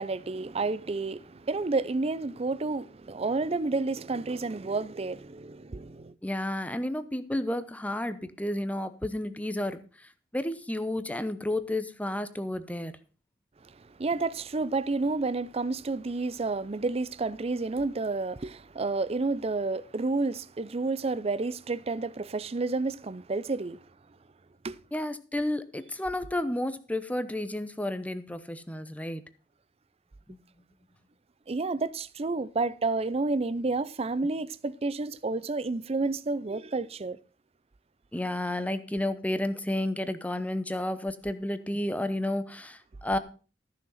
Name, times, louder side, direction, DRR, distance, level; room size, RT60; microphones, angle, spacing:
voice 1, 0.0-6.1 14.0-23.8 24.6-24.8 31.5-37.2, right 3 dB, 35° right, 0.5 m, -30 dB
voice 2, 6.2-9.8 10.3-12.9 24.9-29.2 30.3-30.4 38.1-43.2, left 1 dB, 10° left, 0.8 m, -31 dB
14.0 x 6.2 x 5.6 m
head